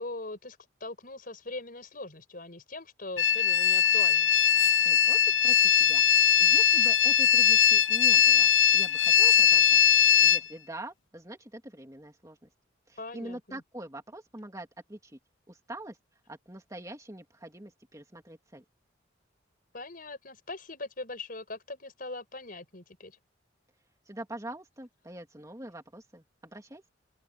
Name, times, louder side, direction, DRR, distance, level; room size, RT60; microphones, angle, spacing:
voice 1, 0.0-4.3 13.0-13.6 19.7-23.2, left 2 dB, 45° left, 5.8 m, -41 dB
sound 1, 3.2-10.4, left 9 dB, 75° left, 1.0 m, -21 dB
voice 2, 4.8-9.8 10.2-12.5 12.9-15.2 15.5-16.0 16.3-18.6 24.1-26.8, right 1 dB, 15° right, 2.9 m, -44 dB
open air
head